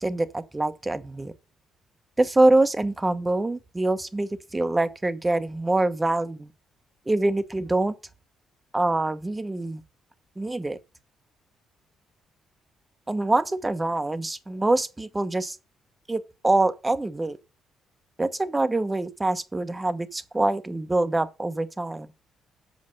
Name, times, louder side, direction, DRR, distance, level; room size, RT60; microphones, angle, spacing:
voice 1, 0.0-1.3 2.2-6.5 7.1-7.9 8.7-9.8 10.4-10.8 13.1-15.6 16.1-17.4 18.2-22.1, right 2 dB, 15° right, 1.0 m, -25 dB
7.6 x 5.2 x 6.5 m
cardioid pair, 90°, 0 cm